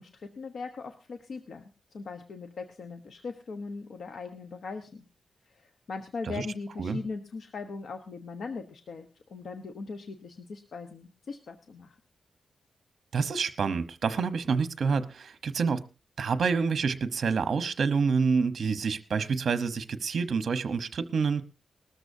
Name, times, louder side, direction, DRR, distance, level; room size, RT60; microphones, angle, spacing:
voice 1, 0.0-5.0 5.5-12.0, left 4 dB, 65° left, 1.0 m, -40 dB
voice 2, 13.1-15.8 16.2-21.4, right 5 dB, 60° right, 1.0 m, -27 dB
19.5 x 13.5 x 2.7 m
wide cardioid pair, 130°, 0 cm